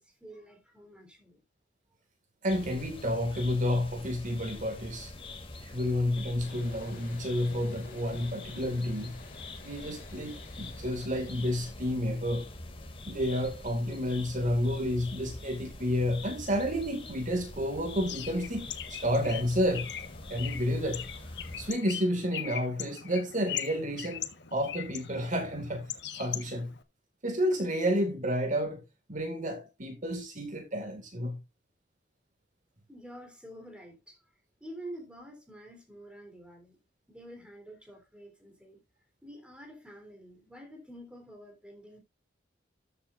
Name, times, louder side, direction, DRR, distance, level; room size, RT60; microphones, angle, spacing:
voice 1, 0.0-1.4 32.9-34.2 34.6-36.8 37.1-38.8 39.2-42.0, right 1 dB, 5° right, 3.7 m, -48 dB
voice 2, 2.4-5.1 5.6-9.2 9.6-12.5 13.1-19.9 20.3-21.1 21.6-24.3 24.5-26.7 27.2-28.8 29.1-31.4, equal, 45° right, 2.2 m, -30 dB
sound 1, 2.5-21.7, left 2 dB, 30° left, 2.5 m, -45 dB
sound 2, 6.4-11.7, left 2 dB, 50° left, 5.7 m, -51 dB
Bird, 18.1-26.8, left 10 dB, 65° left, 1.4 m, -40 dB
13.5 x 8.3 x 2.6 m
head